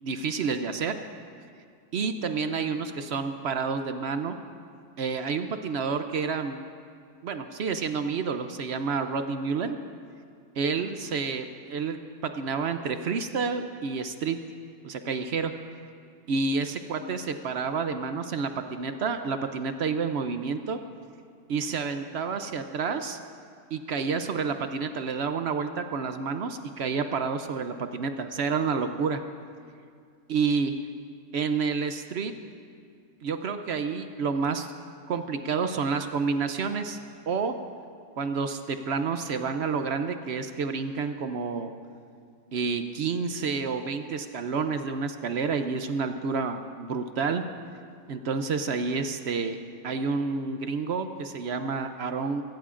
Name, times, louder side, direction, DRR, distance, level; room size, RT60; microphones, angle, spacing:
voice 1, 0.0-0.9 1.9-4.4 5.0-6.6 7.2-9.8 10.6-12.0 12.2-14.4 14.8-15.5 16.3-20.8 21.5-23.2 23.7-29.2 30.3-30.7 31.3-32.3 33.2-34.7 35.1-37.0 37.3-37.5 38.2-41.7 42.5-47.4 48.1-49.6 49.8-52.4, right 5 dB, 60° right, 8 dB, 0.7 m, -29 dB
21.5 x 16.5 x 2.5 m, 2.2 s
omnidirectional pair, 1.7 m